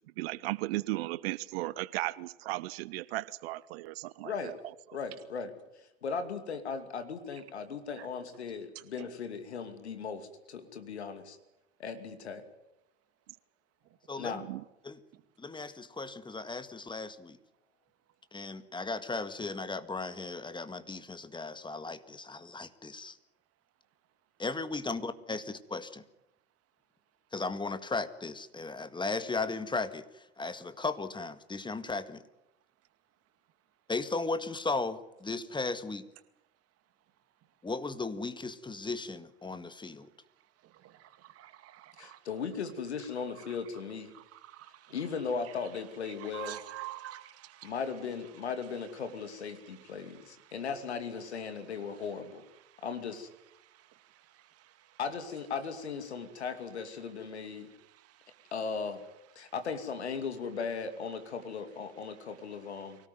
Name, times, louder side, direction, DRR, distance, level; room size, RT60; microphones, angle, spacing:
voice 1, 0.2-4.5 14.4-14.6, right 18 dB, 65° right, 20 dB, 0.9 m, -36 dB
voice 2, 4.9-5.5 6.0-11.4 11.8-12.4 14.2-14.5 24.9-25.0 42.0-44.1 44.9-46.6 47.6-52.5 52.8-53.3 55.0-57.7 58.5-59.0 59.4-63.0, left 5 dB, 80° left, 9 dB, 2.6 m, -37 dB
voice 3, 14.1-14.4 14.8-15.0 15.4-17.4 18.3-23.2 24.4-26.0 27.3-30.0 30.4-32.2 33.9-36.1 37.6-40.1, left 3 dB, 15° left, 12 dB, 1.8 m, -36 dB
voice 4, 40.6-42.2 43.5-43.6 44.1-45.0 45.4-45.6 46.2-47.7 49.6-50.5 52.7-52.8 53.6-55.0 57.9-58.5, right 15 dB, 45° right, 10 dB, 2.3 m, -49 dB
24.5 x 17.5 x 9.4 m, 0.88 s
figure-of-eight pair, 70°, 33 cm